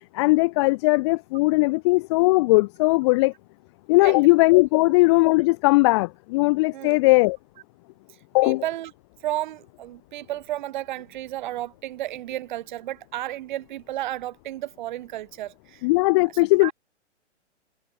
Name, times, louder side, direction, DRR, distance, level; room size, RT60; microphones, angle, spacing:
voice 1, 0.1-3.3 3.9-7.4 8.3-8.6 15.8-16.7, left 24 dB, 25° left, 0.8 m, -19 dB
voice 2, 8.4-8.9 9.2-15.9 16.6-16.7, right 14 dB, 40° right, 3.5 m, -32 dB
figure-of-eight pair, 125°, 35 cm